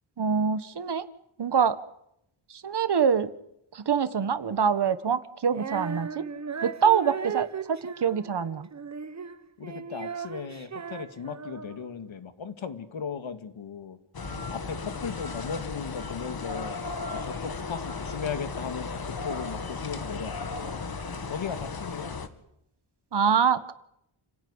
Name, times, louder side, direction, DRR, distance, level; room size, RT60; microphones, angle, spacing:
voice 1, 0.2-1.1 1.4-1.8 2.5-3.3 3.7-6.2 6.6-8.7 23.1-23.7, right 7 dB, 55° right, 12 dB, 1.6 m, -25 dB
Female singing, 5.5-11.9, right 6 dB, 35° right, 1.1 m, -37 dB
voice 2, 9.6-14.0 14.5-16.8 17.1-20.8 21.3-22.2, left 6 dB, 70° left, 10 dB, 2.1 m, -37 dB
sound 1, 14.1-22.3, left 4 dB, 45° left, 2.2 m, -35 dB
30.0 x 17.0 x 9.8 m, 0.78 s
wide cardioid pair, 145°, 49 cm